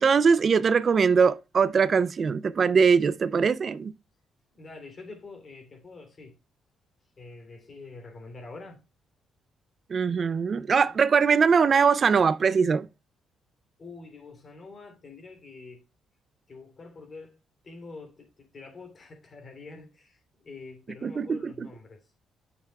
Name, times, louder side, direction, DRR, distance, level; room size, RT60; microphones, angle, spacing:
voice 1, 0.0-3.9 9.9-12.9 21.0-21.7, right 5 dB, 45° right, 0.4 m, -22 dB
voice 2, 4.5-6.4 7.2-8.8 10.8-11.0 13.8-15.8 16.5-17.4 17.6-22.1, left 3 dB, 40° left, 3.1 m, -46 dB
9.9 x 6.6 x 2.3 m
cardioid pair, 90°, 0 cm